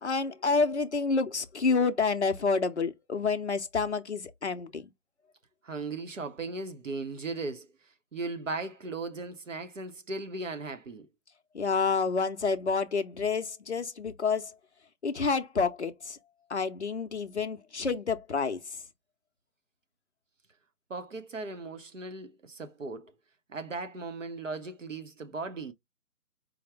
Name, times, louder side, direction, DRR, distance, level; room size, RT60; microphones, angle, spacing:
voice 1, 0.0-4.9 11.5-14.5 15.0-16.2 16.5-18.6, left 4 dB, 50° left, 0.6 m, -28 dB
voice 2, 5.6-7.7 8.1-11.1 20.9-23.1 23.5-25.7, right 3 dB, 55° right, 0.7 m, -37 dB
4.8 x 2.0 x 3.3 m
figure-of-eight pair, 170°, 46 cm